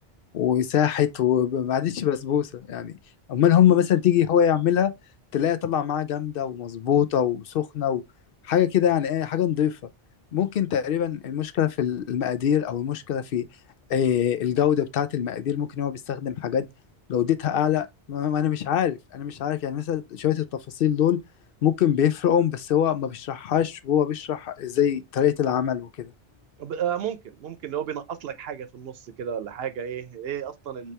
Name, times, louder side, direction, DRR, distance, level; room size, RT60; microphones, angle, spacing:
voice 1, 0.3-2.9 3.3-4.9 5.3-8.0 8.4-9.8 10.3-13.4 13.9-16.7 17.1-20.5 20.7-21.2 21.6-26.1, left 9 dB, 70° left, 0.7 m, -23 dB
voice 2, 26.6-30.9, right 9 dB, 75° right, 0.9 m, -32 dB
4.2 x 3.4 x 3.2 m
omnidirectional pair, 1.0 m